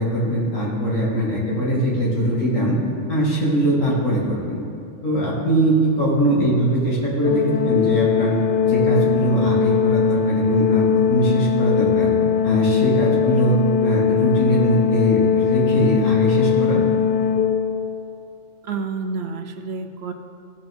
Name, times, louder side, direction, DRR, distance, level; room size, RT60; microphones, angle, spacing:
voice 1, 0.0-2.8 3.1-4.6 5.0-8.3 8.6-12.1 12.4-13.6 13.8-16.8, right 1 dB, 90° left, -5 dB, 2.6 m, -21 dB
voice 2, 6.3-6.6 18.6-20.1, right 4 dB, 65° right, 7 dB, 0.8 m, -29 dB
Organ, 7.2-18.1, left 7 dB, 60° left, 0.6 m, -20 dB
15.5 x 5.9 x 3.5 m, 2.6 s
omnidirectional pair, 1.3 m